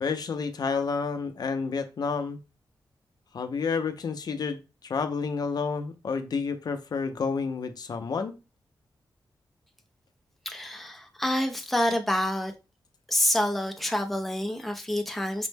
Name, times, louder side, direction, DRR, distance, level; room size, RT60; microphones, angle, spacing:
voice 1, 0.0-2.4 3.3-8.3, left 5 dB, 60° left, 0.4 m, -30 dB
voice 2, 10.5-12.5 13.1-15.5, left 1 dB, ahead, 0.4 m, -27 dB
5.2 x 2.0 x 3.3 m
wide cardioid pair, 150°, 8 cm